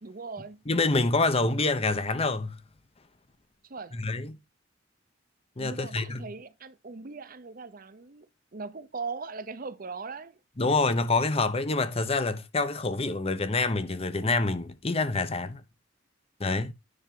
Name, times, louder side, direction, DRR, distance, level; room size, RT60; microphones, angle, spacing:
voice 1, 0.0-0.6 3.6-4.0 5.6-8.3 8.5-10.4, right 4 dB, 50° right, 0.8 m, -39 dB
voice 2, 0.7-2.6 3.9-4.3 5.6-6.2 10.6-15.6 16.4-16.7, left 3 dB, 30° left, 0.9 m, -26 dB
9.8 x 5.8 x 3.7 m
head